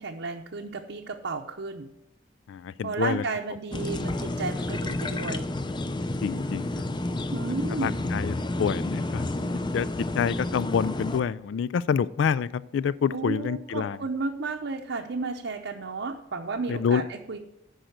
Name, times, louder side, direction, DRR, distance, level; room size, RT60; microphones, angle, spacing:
voice 1, 0.0-1.9 2.8-5.5 7.3-8.1 13.1-17.4, right 3 dB, 75° right, 2 dB, 0.7 m, -33 dB
voice 2, 2.5-3.2 6.2-6.7 7.7-9.3 9.7-9.9 10.2-14.0 16.7-17.0, left 7 dB, 80° left, 18 dB, 0.3 m, -27 dB
sound 1, 3.7-11.2, left 2 dB, 25° left, 0.5 m, -30 dB
10.5 x 5.1 x 7.9 m, 0.86 s
head